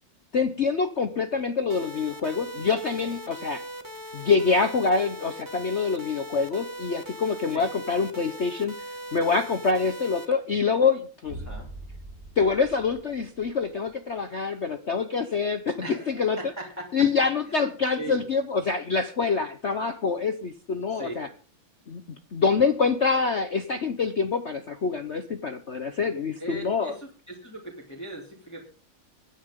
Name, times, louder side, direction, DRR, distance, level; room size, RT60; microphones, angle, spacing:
voice 1, 0.3-3.6 4.1-8.7 9.1-11.5 12.4-16.4 16.9-21.3 21.9-22.0 22.3-26.9, left 5 dB, 45° left, 8 dB, 1.1 m, -25 dB
sound 1, 1.7-10.2, equal, 10° right, 1.7 m, -40 dB
sound 2, 11.3-13.9, right 2 dB, 85° right, 7.5 m, -42 dB
voice 2, 15.8-18.2 20.9-21.3 26.4-28.7, right 1 dB, 10° left, -1 dB, 3.0 m, -40 dB
23.5 x 10.0 x 3.8 m, 0.37 s
omnidirectional pair, 2.1 m